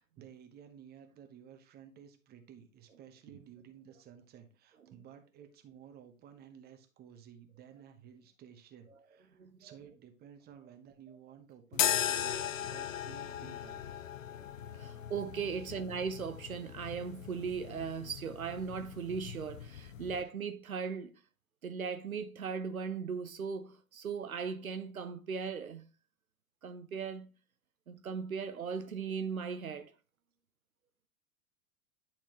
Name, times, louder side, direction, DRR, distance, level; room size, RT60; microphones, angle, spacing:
voice 1, 0.0-14.1 15.6-15.8, right 9 dB, 25° right, 1.1 m, -55 dB
sound 1, 11.7-20.2, left 10 dB, 65° left, 0.6 m, -38 dB
voice 2, 14.7-21.1 21.6-25.8 26.6-27.3 27.9-29.9, right 6 dB, 80° right, 0.7 m, -38 dB
10.0 x 4.5 x 3.0 m
figure-of-eight pair, 95°, 41 cm